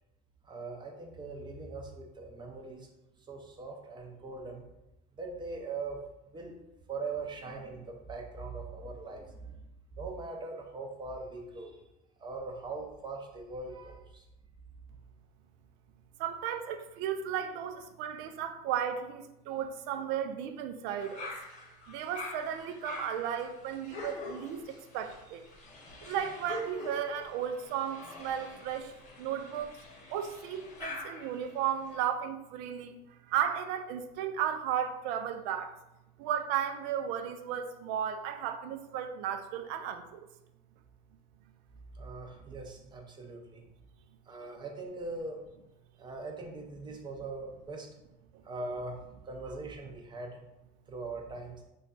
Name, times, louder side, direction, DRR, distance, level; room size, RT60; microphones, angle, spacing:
voice 1, 0.4-2.9 3.2-4.6 5.1-6.0 6.3-6.6 6.9-9.6 9.9-11.8 12.2-14.2 41.9-43.6 44.3-45.4 46.0-47.9 48.4-50.4 50.9-51.6, right 3 dB, 25° right, 2 dB, 0.6 m, -41 dB
voice 2, 16.2-21.3 21.9-25.5 26.0-28.9 29.2-29.8 30.1-35.8 36.2-40.3, right 9 dB, 70° right, 7 dB, 0.4 m, -34 dB
sound 1, 21.0-32.0, left 2 dB, 40° left, 0.9 m, -45 dB
3.2 x 2.3 x 3.9 m, 0.90 s
supercardioid pair, 115°, 18 cm